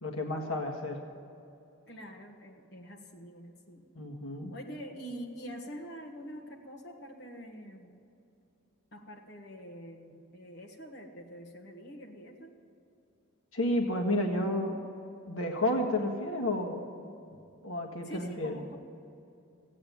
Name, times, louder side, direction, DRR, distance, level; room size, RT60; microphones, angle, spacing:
voice 1, 0.0-1.0 3.9-4.5 13.5-14.8 15.3-16.8 17.6-18.6, left 1 dB, 75° left, 2 dB, 1.5 m, -31 dB
voice 2, 1.9-3.8 4.5-8.0 8.9-12.5 17.3-17.4 18.0-18.7, equal, 50° left, 0 dB, 1.6 m, -45 dB
16.0 x 8.7 x 9.3 m, 2.7 s
head